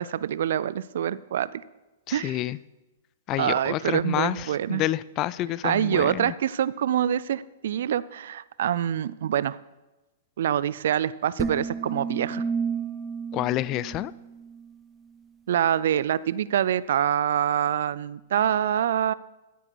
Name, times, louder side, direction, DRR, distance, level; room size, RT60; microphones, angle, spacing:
voice 1, 0.0-1.6 2.1-2.4 3.4-4.8 5.6-9.6 10.4-12.4 15.5-19.1, right 10 dB, 70° right, 18 dB, 0.4 m, -25 dB
voice 2, 2.1-2.6 3.3-6.3 13.3-14.1, left 15 dB, 35° left, 20 dB, 0.4 m, -28 dB
sound 1, 11.4-14.7, right 5 dB, 10° right, 0.7 m, -32 dB
14.0 x 8.0 x 4.6 m, 1.1 s
hypercardioid pair, 120°, 0 cm